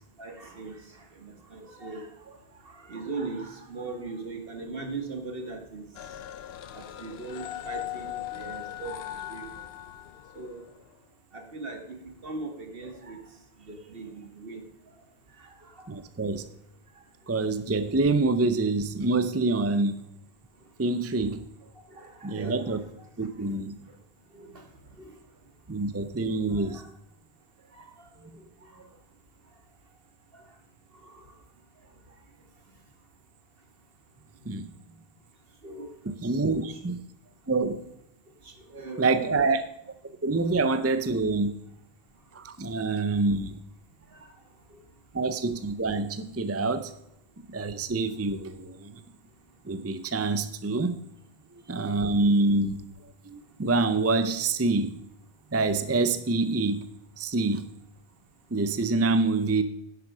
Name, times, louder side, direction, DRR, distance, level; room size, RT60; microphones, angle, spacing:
voice 1, 0.2-2.4 2.7-5.9 6.7-8.9 9.3-9.5 10.3-10.7 11.3-12.0 12.2-13.2 13.7-14.6 15.4-15.9 21.9-22.8 24.3-24.6 25.0-25.1 26.5-26.8 27.7-27.8 28.7-28.8 30.3-30.4 31.0-31.1 35.6-35.9 36.5-36.8 38.4-39.4 44.1-44.3, right 3 dB, 65° right, 5 dB, 2.0 m, -39 dB
sound 1, 5.9-10.8, left 12 dB, 80° left, 0.9 m, -39 dB
voice 2, 15.9-16.5 17.3-20.0 20.8-21.4 22.2-22.8 23.2-23.8 25.7-26.8 28.2-28.4 34.5-34.7 36.2-36.9 37.5-37.8 39.0-39.6 40.0-41.5 42.3-43.6 45.1-46.9 47.5-49.0 49.6-50.9 51.7-52.8 53.2-55.0 55.5-56.9 57.2-57.6 58.5-59.6, right 3 dB, 20° right, 11 dB, 0.5 m, -26 dB
11.0 x 8.2 x 5.0 m, 0.78 s
omnidirectional pair, 1.0 m